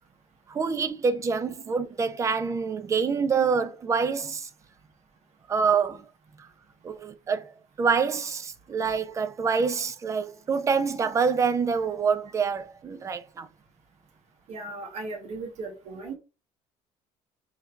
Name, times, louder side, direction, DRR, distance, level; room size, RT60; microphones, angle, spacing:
voice 1, 0.5-4.5 5.5-6.0 6.4-6.5 6.8-13.5, right 5 dB, 25° right, 0.4 m, -26 dB
voice 2, 14.5-16.1, right 3 dB, 60° right, 0.9 m, -37 dB
4.3 x 3.2 x 2.4 m
cardioid pair, 135°, 13 cm